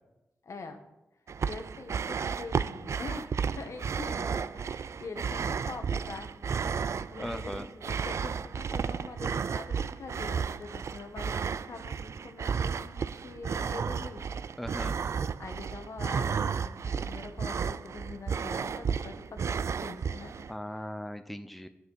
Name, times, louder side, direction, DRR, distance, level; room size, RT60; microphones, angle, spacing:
voice 1, 0.4-0.8 1.4-6.3 6.9-14.2 15.4-20.9, left 4 dB, 65° left, 6 dB, 1.3 m, -44 dB
sound 1, 1.3-20.5, right 6 dB, 65° right, 0.3 m, -33 dB
voice 2, 7.2-7.7 14.6-14.9 20.5-21.7, equal, 5° left, 8 dB, 0.6 m, -38 dB
10.5 x 6.7 x 5.5 m, 0.98 s
cardioid pair, 65°, 5 cm